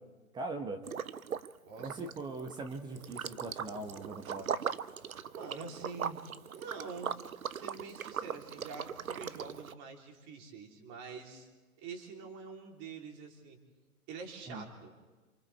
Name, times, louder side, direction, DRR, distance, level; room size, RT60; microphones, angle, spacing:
voice 1, 0.3-0.8 1.8-4.5 14.5-14.6, right 3 dB, 10° right, 5 dB, 1.1 m, -40 dB
Liquid, 0.8-1.5 1.8-9.7, right 7 dB, 70° right, 0.9 m, -39 dB
voice 2, 5.3-6.2 6.5-7.2 7.5-11.5 11.8-13.6 14.1-14.9, right 5 dB, 30° right, 1 dB, 3.6 m, -46 dB
28.0 x 28.0 x 3.5 m, 1.3 s
figure-of-eight pair, 125°, 43 cm